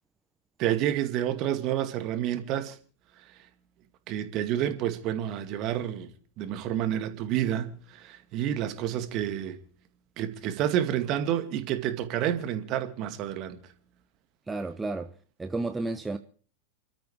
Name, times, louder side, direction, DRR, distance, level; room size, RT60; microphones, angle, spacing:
voice 1, 0.6-2.8 4.1-9.6 10.2-13.6, right 11 dB, 40° right, 2.1 m, -29 dB
voice 2, 14.5-15.1 15.4-16.2, right 3 dB, 10° right, 0.9 m, -31 dB
29.0 x 13.0 x 3.3 m
figure-of-eight pair, 90°, 0 cm